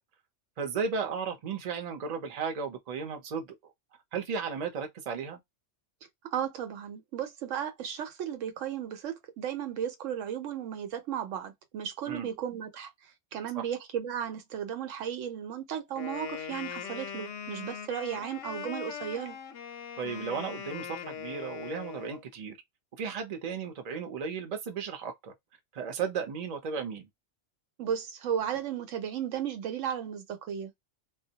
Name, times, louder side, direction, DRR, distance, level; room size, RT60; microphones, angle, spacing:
voice 1, 0.6-3.5 4.1-5.4 12.1-12.3 13.5-13.7 20.0-22.6 22.9-25.3 25.7-27.1, right 6 dB, 45° right, 0.6 m, -35 dB
voice 2, 6.3-12.9 13.3-19.4 27.8-30.8, right 9 dB, 90° right, 1.0 m, -35 dB
Wind instrument woodwind instrument, 16.0-22.2, left 7 dB, 85° left, 0.9 m, -40 dB
2.2 x 2.0 x 2.7 m
omnidirectional pair, 1.3 m